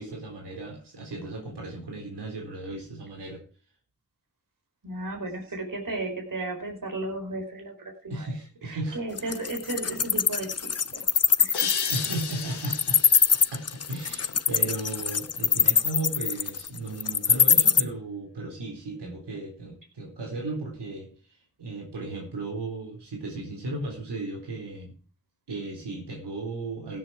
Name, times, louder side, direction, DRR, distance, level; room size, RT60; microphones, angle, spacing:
voice 1, 0.0-3.4 8.1-9.0 11.9-13.0 13.5-21.1 21.6-25.0 25.5-27.0, right 2 dB, 90° right, 0 dB, 4.0 m, -35 dB
voice 2, 4.8-11.1 11.4-11.7 12.1-12.2, right 2 dB, 55° right, 2 dB, 4.3 m, -35 dB
Wild animals, 9.2-17.8, left 6 dB, 40° left, 0.7 m, -22 dB
sound 1, 11.5-14.9, left 7 dB, 80° left, 1.3 m, -35 dB
16.0 x 7.7 x 4.8 m, 0.36 s
cardioid pair, 45°, 40 cm